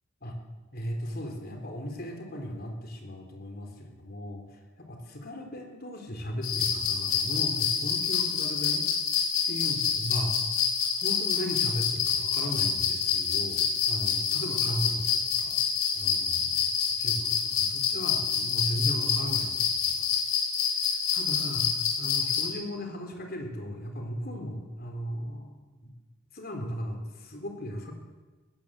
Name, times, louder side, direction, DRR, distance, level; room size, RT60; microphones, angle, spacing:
voice 1, 0.7-8.9 9.4-10.3 10.9-15.6 15.9-16.7 17.0-20.1 20.9-25.6 26.3-27.9, equal, 50° left, 3 dB, 4.0 m, -36 dB
sound 1, 6.4-22.5, left 7 dB, 80° left, 5.1 m, -27 dB
20.5 x 17.5 x 7.8 m, 1.3 s
head